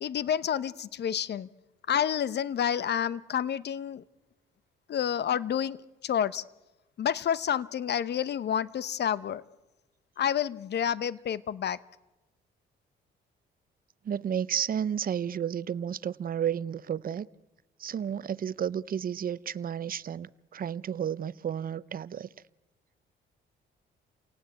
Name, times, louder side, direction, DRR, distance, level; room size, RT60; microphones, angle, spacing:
voice 1, 0.0-1.5 1.9-4.0 4.9-5.8 6.0-6.4 7.0-9.4 10.2-11.8, left 9 dB, 60° left, 1.0 m, -29 dB
voice 2, 14.0-17.3 17.8-22.3, right 8 dB, 45° right, 0.7 m, -32 dB
29.0 x 18.0 x 8.3 m
cardioid pair, 90°, 20 cm